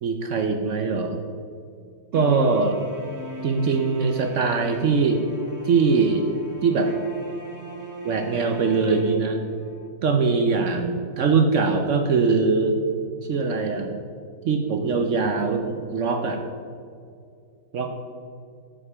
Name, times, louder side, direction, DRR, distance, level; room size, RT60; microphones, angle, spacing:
voice 1, 0.0-1.2 2.1-2.8 3.4-5.2 5.6-6.3 6.6-6.9 8.0-9.4 10.0-12.8 13.3-13.9 14.4-16.4 17.7-17.9, right 4 dB, 70° right, 5 dB, 0.7 m, -22 dB
sound 1, 2.1-9.9, right 1 dB, 25° right, 0.4 m, -39 dB
9.8 x 7.6 x 4.9 m, 2.3 s
omnidirectional pair, 2.2 m